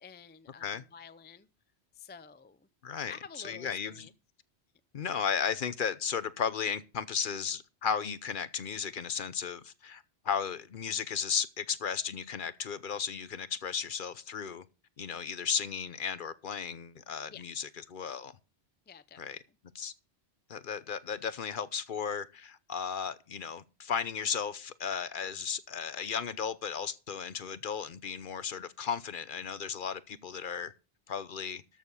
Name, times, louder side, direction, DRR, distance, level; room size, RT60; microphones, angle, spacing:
voice 1, 0.0-1.5 1.9-2.7 3.1-4.1 17.3-17.4 18.9-19.4, left 6 dB, 15° left, 0.3 m, -50 dB
voice 2, 2.8-3.1 3.4-4.1 4.9-14.6 15.0-18.4 19.2-19.4 19.7-19.9 20.5-30.7 31.1-31.6, left 7 dB, 55° left, 0.8 m, -35 dB
13.0 x 6.6 x 5.5 m
omnidirectional pair, 1.1 m